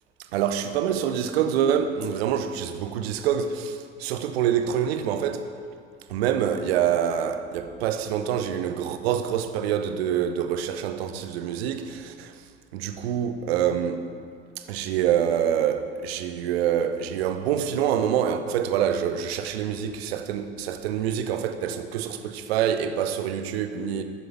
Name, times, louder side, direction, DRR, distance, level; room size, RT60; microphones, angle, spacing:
voice 1, 0.3-5.5 6.1-12.3 12.7-14.0 14.7-24.0, right 9 dB, 65° right, 1.0 m, -26 dB
12.5 x 8.1 x 8.1 m
figure-of-eight pair, 60°, 34 cm